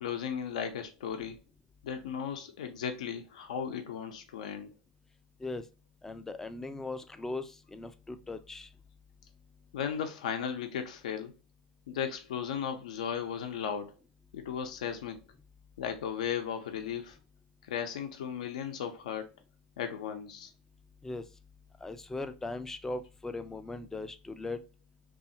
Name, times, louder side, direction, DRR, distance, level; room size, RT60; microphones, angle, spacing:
voice 1, 0.0-1.4 1.8-4.7 9.7-11.3 11.9-13.9 14.3-15.2 15.8-17.2 17.6-19.3 19.8-20.5, left 8 dB, 75° left, 0.4 m, -36 dB
voice 2, 6.0-8.7 21.0-21.2 21.8-24.6, left 2 dB, 10° left, 0.3 m, -39 dB
2.7 x 2.3 x 2.6 m
hypercardioid pair, 90°, 4 cm